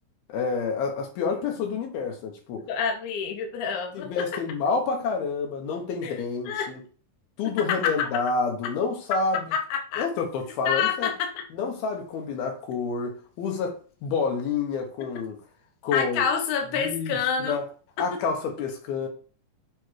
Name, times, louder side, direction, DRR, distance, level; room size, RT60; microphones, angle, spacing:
voice 1, 0.3-2.6 3.9-6.8 7.4-9.4 10.0-11.1 11.5-15.4 15.8-16.3 16.8-17.7 18.0-19.1, left 5 dB, 85° left, 3.2 m, -28 dB
voice 2, 2.7-4.1 6.0-6.2 6.5-6.7 7.7-8.1 9.5-10.1 10.7-11.4 15.9-17.6 18.0-18.2, left 7 dB, 65° left, 2.2 m, -27 dB
7.1 x 3.4 x 4.7 m
omnidirectional pair, 4.3 m